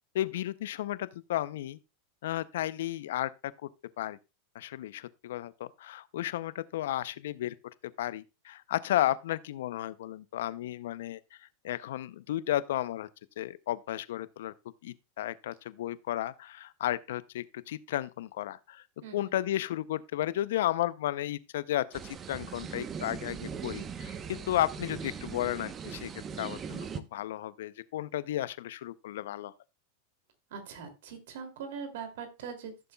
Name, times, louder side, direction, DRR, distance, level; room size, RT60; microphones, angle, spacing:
voice 1, 0.1-1.8 2.2-3.3 3.6-3.7 4.0-4.2 4.5-7.5 7.8-13.1 13.4-14.5 14.8-18.8 19.1-26.1 26.4-29.5, left 13 dB, 75° left, 0.5 m, -33 dB
voice 2, 19.0-19.3 30.5-32.9, right 6 dB, 70° right, 2.6 m, -42 dB
sound 1, 21.9-27.0, right 6 dB, 30° right, 0.9 m, -40 dB
15.0 x 6.7 x 2.3 m
hypercardioid pair, 105°, 0 cm